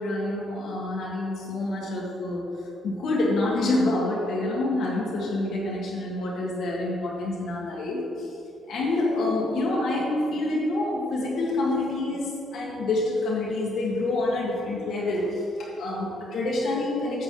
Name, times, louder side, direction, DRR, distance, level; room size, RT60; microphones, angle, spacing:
voice 1, 0.0-2.6 2.8-8.3 8.7-17.2, left 2 dB, 70° left, -4 dB, 1.6 m, -27 dB
8.6 x 7.3 x 3.9 m, 2.7 s
cardioid pair, 90°, 0 cm